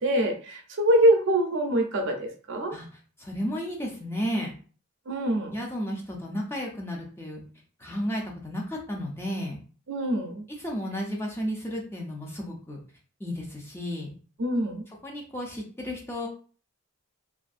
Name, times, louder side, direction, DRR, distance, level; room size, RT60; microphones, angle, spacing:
voice 1, 0.0-2.7 5.1-5.5 9.9-10.4 14.4-14.8, right 1 dB, 55° right, 4 dB, 0.5 m, -24 dB
voice 2, 3.2-4.5 5.5-7.4 7.8-9.6 10.6-12.8 13.2-14.1 15.0-16.3, equal, 10° left, -1 dB, 0.4 m, -33 dB
2.5 x 2.5 x 2.4 m, 0.39 s
head